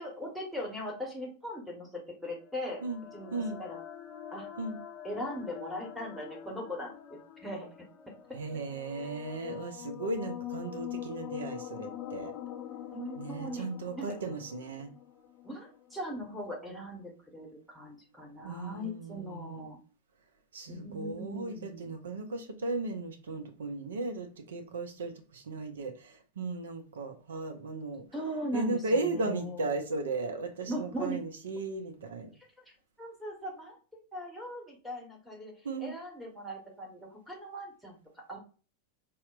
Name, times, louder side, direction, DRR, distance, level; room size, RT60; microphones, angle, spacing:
voice 1, 0.0-2.8 3.1-3.8 4.3-4.5 5.0-7.7 12.9-13.7 14.0-14.1 15.4-19.8 20.7-21.9 28.1-29.7 30.7-31.2 33.0-33.8 34.1-35.5 35.8-38.0 38.3-38.4, equal, ahead, -3 dB, 1.0 m, -39 dB
sound 1, 2.4-16.0, left 11 dB, 30° left, 0.4 m, -44 dB
voice 2, 8.3-12.3 13.2-14.9 18.4-19.7 20.5-28.1 28.5-32.3 35.6-35.9, right 3 dB, 65° right, 5 dB, 0.5 m, -36 dB
4.2 x 2.1 x 2.3 m, 0.37 s
figure-of-eight pair, 90°, 0 cm